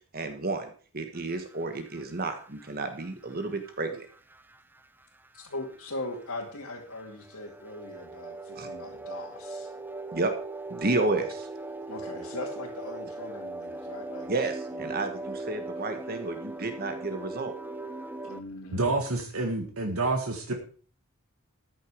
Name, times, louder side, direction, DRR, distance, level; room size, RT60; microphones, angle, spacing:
voice 1, 0.1-4.1 8.5-8.7 10.1-10.3 10.7-11.5 14.3-17.5, right 3 dB, 45° right, 7 dB, 1.4 m, -31 dB
sound 1, 1.1-18.4, right 2 dB, 10° right, 0.5 m, -40 dB
voice 2, 5.3-9.7 11.9-14.3 14.7-14.8 15.2-15.3 18.2-18.9, left 2 dB, 70° left, -4 dB, 2.4 m, -40 dB
voice 3, 18.7-20.5, right 2 dB, 85° right, 3 dB, 1.9 m, -28 dB
14.0 x 9.4 x 4.9 m, 0.43 s
head